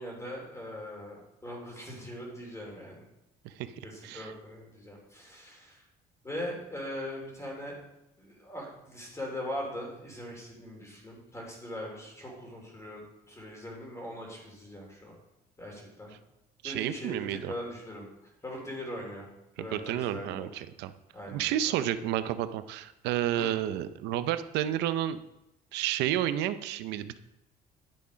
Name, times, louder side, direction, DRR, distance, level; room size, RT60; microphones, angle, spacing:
voice 1, 0.0-3.0 3.8-5.8 6.2-7.7 8.2-15.1 15.6-16.1 16.6-18.1 18.4-19.3 19.6-20.5 21.1-21.8 23.4-23.5, equal, 15° left, -1 dB, 3.2 m, -40 dB
voice 2, 16.6-17.5 19.6-20.9 21.3-25.2 25.7-27.2, right 11 dB, 90° right, 12 dB, 0.6 m, -31 dB
10.0 x 7.0 x 5.1 m, 0.87 s
cardioid pair, 110°, 17 cm